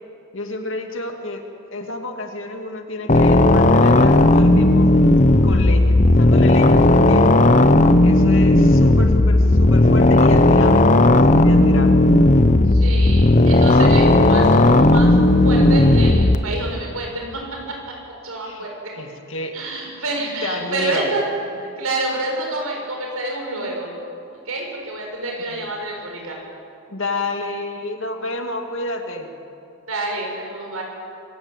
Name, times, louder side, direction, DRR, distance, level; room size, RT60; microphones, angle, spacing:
voice 1, 0.3-1.4 1.7-4.9 5.1-7.6 8.0-12.1 18.4-18.7 18.9-19.5 20.4-21.1 25.4-25.7 26.9-29.3, left 2 dB, 60° left, 4 dB, 2.5 m, -30 dB
sound 1, 3.1-16.4, left 2 dB, 35° left, 0.9 m, -13 dB
voice 2, 12.7-15.1 15.4-17.4 17.7-17.8 18.2-18.9 19.5-21.2 21.6-23.9 24.4-26.4 29.9-30.8, right 2 dB, 85° right, 0 dB, 6.7 m, -28 dB
25.0 x 17.0 x 9.3 m, 2.6 s
head